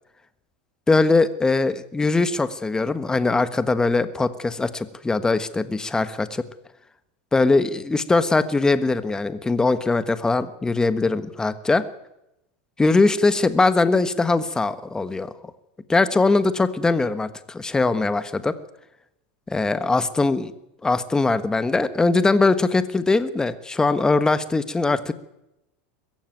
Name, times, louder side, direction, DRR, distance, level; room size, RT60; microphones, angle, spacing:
voice 1, 0.9-6.4 7.3-11.8 12.8-15.3 15.9-18.6 19.5-20.5 20.8-25.1, left 3 dB, 10° left, 12 dB, 1.4 m, -21 dB
21.5 x 15.0 x 9.3 m, 0.87 s
supercardioid pair, 125°, 6 cm